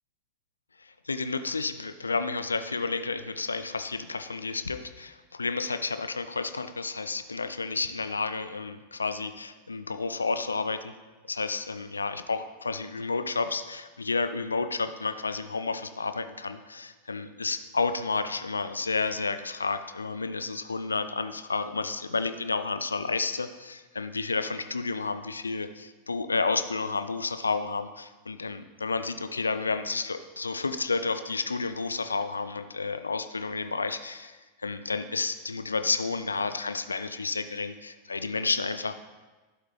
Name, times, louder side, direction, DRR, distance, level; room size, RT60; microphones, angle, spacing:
voice 1, 0.8-10.9 11.3-38.9, left 4 dB, 75° left, 11 dB, 0.4 m, -31 dB
11.5 x 8.1 x 3.1 m, 1.2 s
figure-of-eight pair, 90°, 0 cm